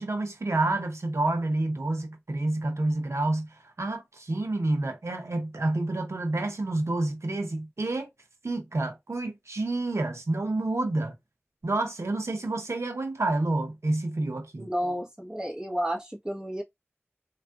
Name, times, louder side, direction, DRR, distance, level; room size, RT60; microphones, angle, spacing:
voice 1, 0.0-8.1 8.4-11.1 11.6-14.7, right 2 dB, 90° right, 0.6 m, -29 dB
voice 2, 14.6-16.6, equal, 15° right, 1.2 m, -31 dB
3.4 x 2.4 x 2.3 m
wide cardioid pair, 45°, 5 cm